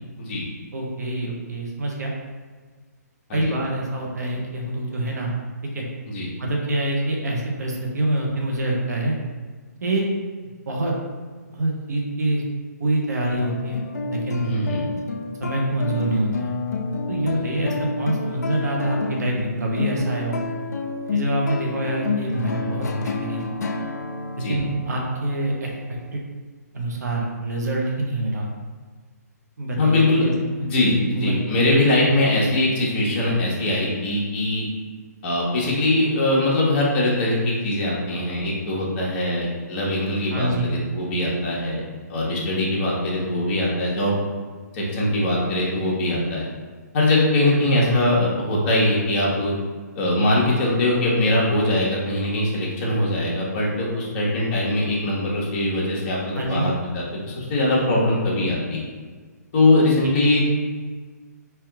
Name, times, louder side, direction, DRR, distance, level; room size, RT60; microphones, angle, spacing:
voice 1, 0.7-2.1 3.3-5.3 5.6-5.8 6.4-9.2 9.8-10.0 10.7-10.9 11.5-12.5 12.8-13.8 14.1-14.5 15.4-16.5 17.1-20.4 21.1-23.4 24.4-25.7 26.1-26.2 26.7-28.5 29.6-30.6 31.1-31.4 40.3-40.7 47.6-48.0 56.3-56.7 60.0-60.1, right 1 dB, 75° right, -1 dB, 1.0 m, -26 dB
sound 1, 13.4-26.1, left 3 dB, 70° left, 0.5 m, -29 dB
voice 2, 14.4-14.8 24.4-24.6 29.8-30.3 30.6-34.6 35.2-41.8 42.1-44.1 44.7-46.4 46.9-49.5 49.9-58.8 59.5-60.4, left 1 dB, 40° left, -4 dB, 1.2 m, -22 dB
3.5 x 2.9 x 3.5 m, 1.5 s
hypercardioid pair, 145°, 9 cm